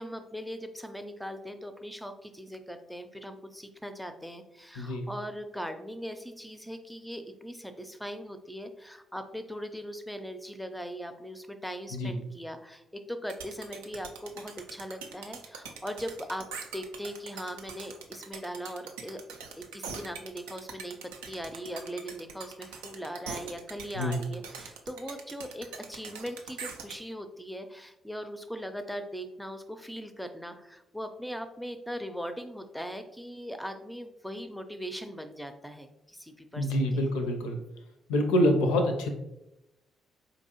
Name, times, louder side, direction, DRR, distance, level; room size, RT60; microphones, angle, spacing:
voice 1, 0.0-19.2 19.6-37.2, equal, 5° left, 8 dB, 0.5 m, -40 dB
voice 2, 4.8-5.1 11.9-12.1 24.0-24.2 36.5-37.6 38.1-39.1, left 1 dB, 75° left, 4 dB, 0.5 m, -26 dB
sound 1, 13.3-27.0, right 6 dB, 80° right, 0.4 m, -42 dB
4.2 x 2.6 x 2.8 m, 0.89 s
hypercardioid pair, 45°, 0 cm